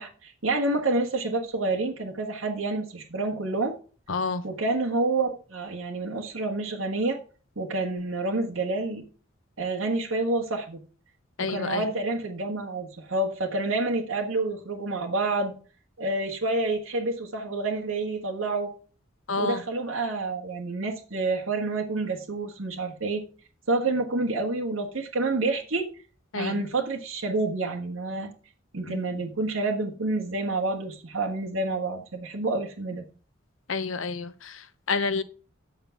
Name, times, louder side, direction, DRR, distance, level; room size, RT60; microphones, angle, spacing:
voice 1, 0.0-3.7 4.4-7.2 7.6-9.0 9.6-10.8 11.4-15.6 16.0-18.7 19.4-23.2 23.7-25.9 26.4-28.3 28.7-33.1, right 2 dB, 80° right, 1.8 m, -28 dB
voice 2, 4.1-4.4 11.4-11.8 19.3-19.6 26.3-26.6 28.9-29.0 33.7-35.2, left 4 dB, 75° left, 0.9 m, -29 dB
8.9 x 6.6 x 5.8 m
head